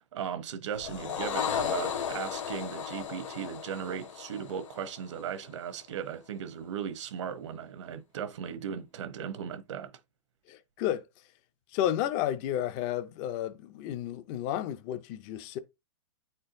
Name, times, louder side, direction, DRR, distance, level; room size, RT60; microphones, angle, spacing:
voice 1, 0.0-9.9, right 8 dB, 65° right, 0.9 m, -37 dB
sound 1, 0.7-5.3, left 8 dB, 75° left, 1.4 m, -35 dB
voice 2, 10.5-11.1 11.7-15.6, left 11 dB, 20° left, 0.4 m, -32 dB
9.2 x 4.4 x 2.6 m
supercardioid pair, 175°, 16 cm